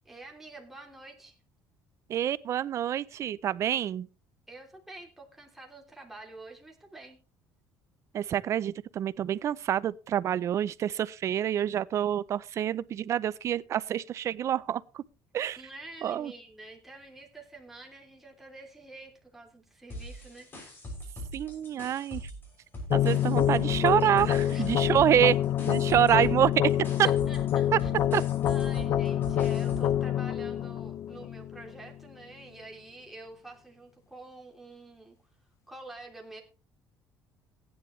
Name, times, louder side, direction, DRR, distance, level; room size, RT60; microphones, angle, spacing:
voice 1, 0.0-1.4 4.5-7.2 15.6-20.5 24.5-24.8 27.0-27.9 28.4-35.2 35.7-36.4, right 2 dB, 5° right, 3.0 m, -47 dB
voice 2, 2.1-4.1 8.1-15.0 15.3-15.6 16.0-16.3 21.3-22.2 22.9-25.4 25.7-26.7 27.0-27.1 27.7-27.8 28.1-28.2, right 10 dB, 45° right, 0.5 m, -27 dB
sound 1, 19.9-22.5 22.7-30.0, equal, 30° left, 6.2 m, -41 dB
sound 2, 22.9-31.9, left 11 dB, 50° left, 0.5 m, -27 dB
15.5 x 10.0 x 3.2 m
cardioid pair, 125°, 7 cm